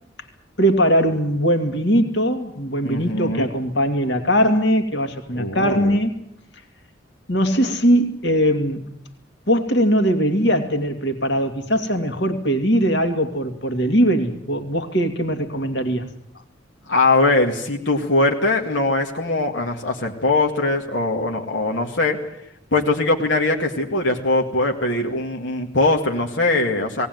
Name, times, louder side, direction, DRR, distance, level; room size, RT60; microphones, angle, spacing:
voice 1, 0.6-6.1 7.3-8.8 9.5-16.1, equal, 70° left, 7 dB, 2.4 m, -20 dB
voice 2, 2.8-3.5 5.4-6.0 16.9-22.2 22.7-27.1, left 2 dB, 90° left, 1 dB, 2.0 m, -21 dB
19.0 x 18.5 x 9.3 m, 0.76 s
head